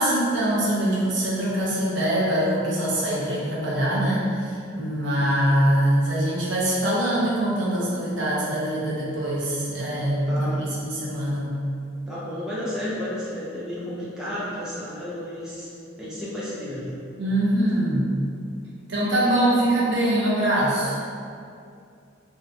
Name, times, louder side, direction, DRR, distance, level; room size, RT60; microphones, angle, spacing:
voice 1, 0.0-11.6 17.2-18.1 18.9-21.0, right 1 dB, 60° right, -6 dB, 0.6 m, -23 dB
voice 2, 10.3-10.7 12.1-15.7 16.0-17.0, left 1 dB, 5° right, -10 dB, 0.4 m, -32 dB
2.4 x 2.1 x 2.5 m, 2.4 s
head